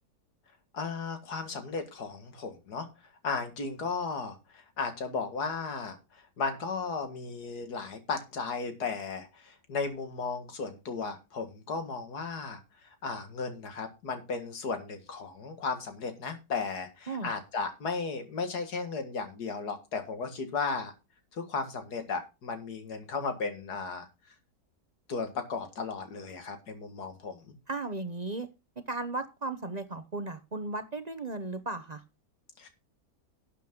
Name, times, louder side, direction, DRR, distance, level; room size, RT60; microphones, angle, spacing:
voice 1, 0.7-2.9 3.2-12.6 13.0-20.9 21.3-24.1 25.1-27.5 32.6-32.7, left 4 dB, 65° left, 2.4 m, -35 dB
voice 2, 27.7-28.5 28.8-32.0, right 2 dB, 35° right, 0.7 m, -35 dB
11.5 x 8.4 x 3.7 m
omnidirectional pair, 1.8 m